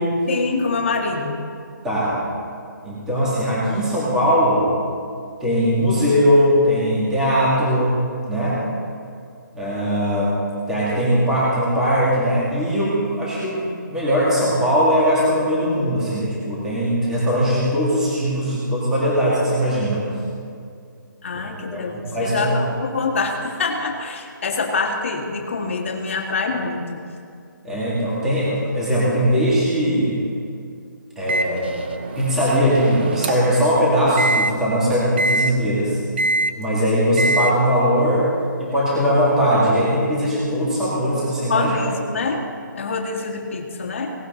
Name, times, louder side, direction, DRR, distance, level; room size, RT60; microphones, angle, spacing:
voice 1, 0.3-1.4 21.2-27.0 41.5-42.4 42.7-44.1, left 4 dB, 35° left, 1 dB, 2.0 m, -25 dB
voice 2, 1.8-2.2 2.8-4.7 5.4-8.0 8.3-8.6 9.5-10.4 10.7-13.6 13.9-20.0 21.3-21.8 22.1-22.7 27.6-30.2 31.2-31.7 32.2-36.0 36.6-38.3 38.6-41.7, equal, 5° right, -8 dB, 2.3 m, -20 dB
Microwave oven, 31.3-33.6 34.2-34.5 35.2-35.5 36.2-36.5 37.2-37.5, right 2 dB, 30° right, 0.7 m, -23 dB
18.0 x 16.5 x 4.0 m, 2.3 s
hypercardioid pair, 175°, 11 cm